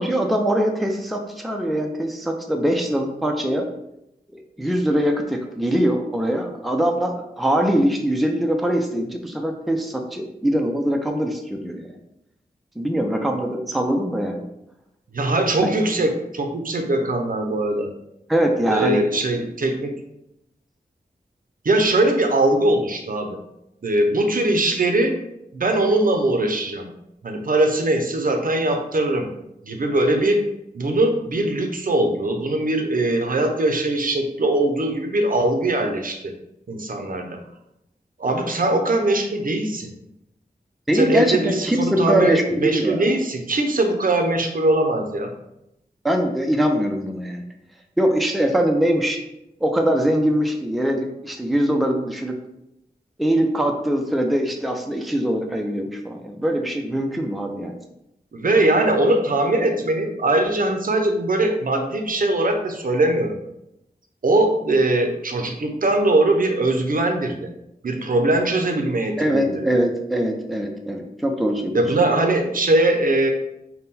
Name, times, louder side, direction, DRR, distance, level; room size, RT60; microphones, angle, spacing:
voice 1, 0.0-3.7 4.6-11.9 12.8-14.4 15.6-15.7 18.3-19.0 40.9-43.0 46.0-47.4 48.0-49.2 49.6-52.3 53.2-57.7 69.2-71.8, equal, ahead, 3 dB, 0.4 m, -22 dB
voice 2, 15.1-17.9 18.7-19.9 21.6-23.4 23.8-25.2 25.5-26.9 27.2-29.3 29.6-30.4 30.7-36.3 36.7-37.4 38.2-39.9 40.9-45.3 58.3-63.4 64.2-67.5 67.8-69.5 71.7-73.3, right 2 dB, 60° right, 4 dB, 0.6 m, -21 dB
3.6 x 2.2 x 4.1 m, 0.83 s
wide cardioid pair, 60°, 16 cm